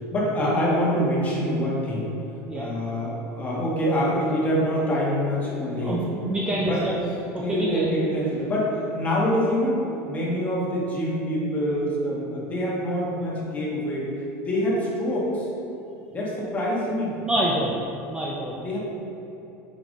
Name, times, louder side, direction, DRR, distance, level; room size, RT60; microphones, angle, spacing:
voice 1, 0.1-2.2 2.5-6.1 6.5-6.9 7.4-14.1 14.5-15.5 16.1-17.2 18.6-18.8, equal, 20° left, -5 dB, 1.2 m, -25 dB
voice 2, 5.7-6.9 7.3-7.9 17.2-17.8 18.1-18.6, right 1 dB, 10° right, -4 dB, 0.5 m, -27 dB
5.8 x 5.1 x 3.6 m, 3.0 s
cardioid pair, 160°, 8 cm